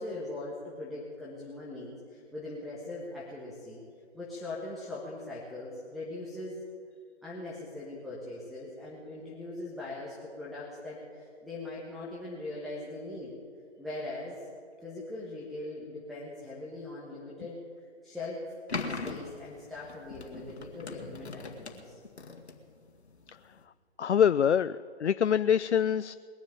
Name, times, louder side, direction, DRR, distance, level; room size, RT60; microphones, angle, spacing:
voice 1, 0.0-3.8 4.1-6.6 7.2-13.3 13.8-14.4 14.8-17.6 18.0-18.4 18.8-22.0, left 2 dB, ahead, -6 dB, 1.3 m, -41 dB
sound 1, 18.7-23.6, left 4 dB, 70° left, 2.0 m, -40 dB
voice 2, 24.0-26.2, left 8 dB, 90° left, 15 dB, 0.5 m, -25 dB
21.0 x 7.2 x 9.0 m, 2.2 s
figure-of-eight pair, 145°, 33 cm